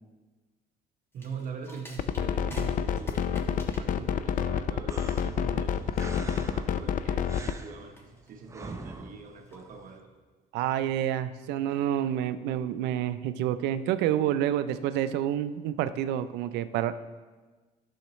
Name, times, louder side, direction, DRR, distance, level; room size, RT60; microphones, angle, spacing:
sound 1, 1.1-10.2, equal, 15° left, 1.4 m, -51 dB
voice 1, 1.1-10.1, right 5 dB, 55° right, 3 dB, 0.9 m, -43 dB
sound 2, 2.0-7.6, left 8 dB, 50° left, 0.4 m, -28 dB
sound 3, 4.9-10.0, right 3 dB, 15° right, 0.6 m, -45 dB
voice 2, 10.5-16.9, right 11 dB, 90° right, 12 dB, 0.4 m, -28 dB
11.5 x 6.4 x 3.1 m, 1.3 s
cardioid pair, 110°, 17 cm